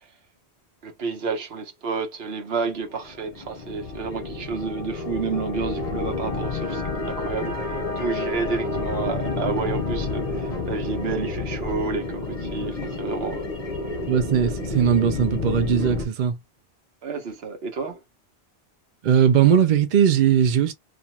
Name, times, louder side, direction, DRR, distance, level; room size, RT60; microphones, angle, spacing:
voice 1, 0.8-6.8 7.1-13.5 17.0-18.0, right 4 dB, 70° right, 1.1 m, -30 dB
sound 1, 2.8-16.0, left 3 dB, 40° left, 0.7 m, -29 dB
voice 2, 14.1-16.4 19.0-20.7, right 8 dB, 55° right, 0.6 m, -19 dB
2.5 x 2.4 x 2.8 m
omnidirectional pair, 1.1 m